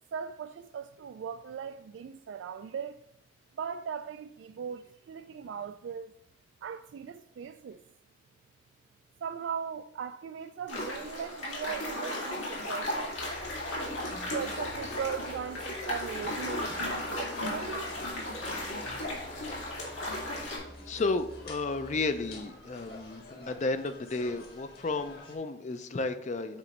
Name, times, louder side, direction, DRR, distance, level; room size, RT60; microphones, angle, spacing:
voice 1, 0.1-3.0 3.6-6.1 6.6-7.8 9.2-13.2 14.3-17.9, right 7 dB, 75° right, 0.3 m, -39 dB
sound 1, 10.7-20.6, left 1 dB, 85° left, 2.4 m, -35 dB
sound 2, 12.6-25.3, left 2 dB, 55° left, 1.5 m, -51 dB
sound 3, 13.2-22.4, equal, 15° right, 0.7 m, -50 dB
voice 2, 20.9-26.6, left 3 dB, 40° left, 0.4 m, -33 dB
8.4 x 3.1 x 5.2 m
head